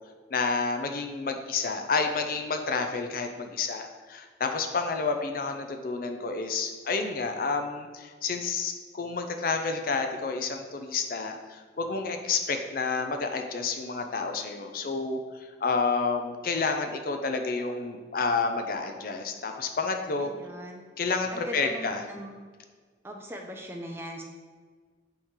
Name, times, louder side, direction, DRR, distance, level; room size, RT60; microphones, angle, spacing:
voice 1, 0.3-20.3 21.0-22.0, left 4 dB, 50° left, 5 dB, 0.5 m, -30 dB
voice 2, 20.2-20.8 21.3-22.3 23.0-24.2, equal, 15° right, 2 dB, 0.5 m, -40 dB
8.8 x 3.2 x 3.6 m, 1.5 s
head